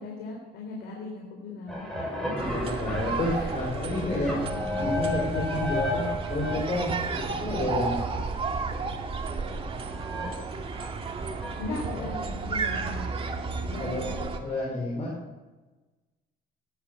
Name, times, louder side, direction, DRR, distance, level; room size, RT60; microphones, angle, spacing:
voice 1, 0.0-2.4 3.3-3.5 11.6-13.1 13.6-14.1, left 3 dB, 80° left, -1 dB, 3.9 m, -38 dB
sound 1, 1.7-6.6 7.5-7.6 7.9-8.0 8.6-8.7 9.8-10.3 10.7-11.7, left 2 dB, ahead, 7.1 m, -33 dB
voice 2, 2.3-4.5 4.7-8.0 12.0-12.1 13.8-15.1, left 1 dB, 40° left, -3 dB, 4.7 m, -30 dB
sound 2, 2.4-14.4, right 4 dB, 35° right, 2.3 m, -33 dB
18.5 x 11.5 x 6.7 m, 1.2 s
cardioid pair, 110°, 17 cm